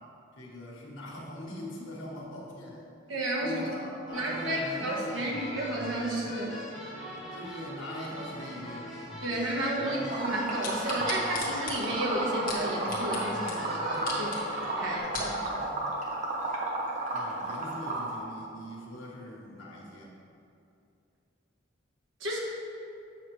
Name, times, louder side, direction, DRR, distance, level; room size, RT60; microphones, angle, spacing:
voice 1, 0.3-2.8 3.4-5.5 7.3-8.9 9.7-10.2 17.1-20.1, left 1 dB, 80° left, -3 dB, 1.5 m, -41 dB
voice 2, 3.1-3.7 4.1-6.5 9.2-14.4 14.7-15.7 22.2-22.4, right 1 dB, 85° right, -3 dB, 1.4 m, -32 dB
sound 1, 4.1-15.0, equal, ahead, 1.6 m, -41 dB
Liquid, 10.1-18.1, right 2 dB, 40° right, 1.0 m, -32 dB
sound 2, 10.6-13.2 13.5-13.6 13.9-14.4 14.9-15.3 16.0-16.1, left 4 dB, 45° left, 1.4 m, -37 dB
8.0 x 6.0 x 3.2 m, 2.6 s
head